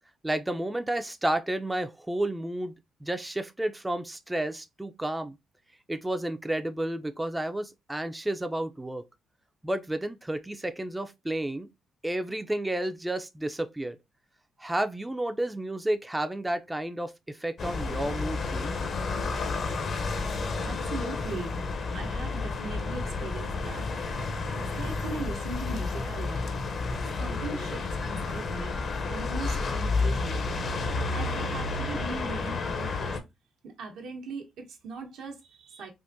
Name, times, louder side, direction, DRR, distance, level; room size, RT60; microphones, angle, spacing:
voice 1, 0.2-2.7 3.0-5.3 5.9-9.0 9.6-11.7 12.0-14.0 14.6-18.7, right 1 dB, 10° right, 0.4 m, -31 dB
sound 1, 17.6-33.2, left 3 dB, 50° left, 0.6 m, -31 dB
voice 2, 20.6-21.5 21.9-23.9 24.7-26.5 27.2-28.8 29.1-30.4 31.1-33.2 33.6-35.9, right 3 dB, 80° right, 0.9 m, -39 dB
3.5 x 2.5 x 2.6 m
cardioid pair, 90°, 0 cm